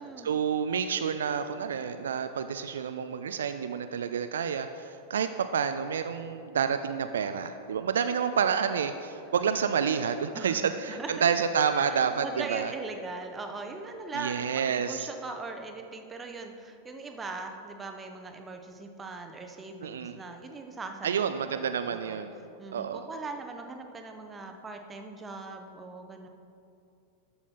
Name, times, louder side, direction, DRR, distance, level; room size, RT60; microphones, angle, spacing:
voice 1, 0.2-12.7 14.1-15.1 19.8-20.2 21.0-22.4 22.7-23.1, right 7 dB, 65° right, 9 dB, 0.3 m, -29 dB
voice 2, 10.3-11.3 11.7-21.1 21.4-21.6 21.9-22.2 22.6-26.3, right 3 dB, 15° right, 4 dB, 0.8 m, -40 dB
13.0 x 5.5 x 4.3 m, 2.7 s
figure-of-eight pair, 90°, 0 cm